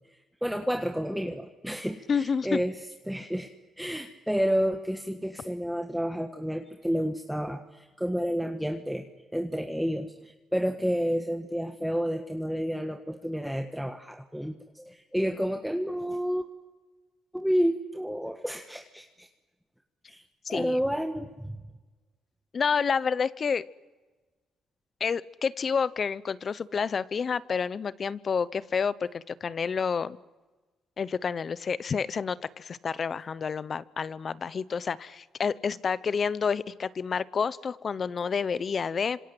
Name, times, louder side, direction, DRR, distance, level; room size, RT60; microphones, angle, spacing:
voice 1, 0.1-2.8 3.1-3.5 3.8-16.5 17.3-19.3 20.1-20.2 20.5-21.6, equal, ahead, 5 dB, 1.5 m, -30 dB
voice 2, 2.1-2.6 20.5-20.8 22.5-23.6 25.0-30.2 31.0-39.2, left 6 dB, 45° left, 18 dB, 0.8 m, -29 dB
27.0 x 26.5 x 7.9 m, 1.3 s
cardioid pair, 90°, 0 cm